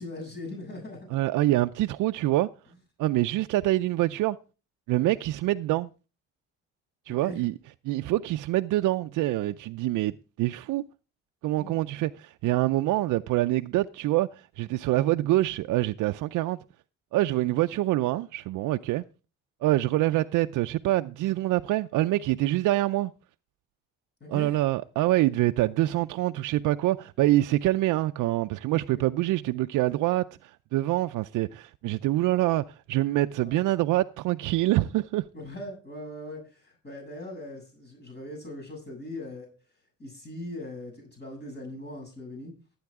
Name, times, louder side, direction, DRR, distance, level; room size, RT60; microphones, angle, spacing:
voice 1, 0.0-1.2 7.1-7.4 11.6-11.8 24.2-24.6 28.9-29.0 33.4-33.6 35.3-39.5 40.0-42.5, left 1 dB, 35° left, 7.2 m, -40 dB
voice 2, 1.1-2.5 3.0-4.4 4.9-5.9 7.1-7.5 7.8-10.8 11.4-16.6 17.1-19.0 19.6-23.1 24.3-35.3, right 16 dB, 85° right, 0.5 m, -25 dB
16.5 x 8.7 x 3.6 m
cardioid pair, 90°, 30 cm